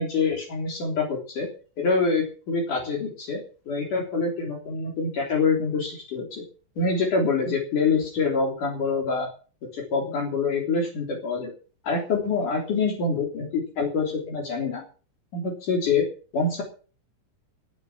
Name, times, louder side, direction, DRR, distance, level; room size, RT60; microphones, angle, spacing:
voice 1, 0.0-1.5 1.8-6.4 6.8-9.3 9.7-11.5 11.8-14.8 15.3-16.1 16.3-16.6, left 4 dB, 70° left, -1 dB, 5.0 m, -25 dB
18.5 x 9.4 x 6.1 m, 0.39 s
omnidirectional pair, 3.8 m